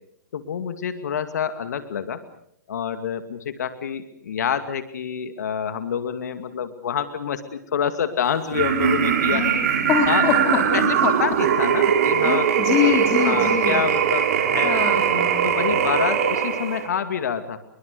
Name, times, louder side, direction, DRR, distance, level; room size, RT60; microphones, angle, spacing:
voice 1, 0.3-2.2 2.7-9.4 10.1-10.2 10.7-12.5 12.8-12.9 13.2-14.8 15.4-17.6, left 8 dB, 75° left, 9 dB, 2.3 m, -27 dB
sound 1, 8.5-16.9, right 8 dB, 55° right, 4.7 m, -21 dB
voice 2, 9.9-11.1 12.2-13.8 14.6-15.5, left 7 dB, 30° left, 1 dB, 4.4 m, -24 dB
27.5 x 22.5 x 6.7 m, 0.71 s
hypercardioid pair, 135°, 9 cm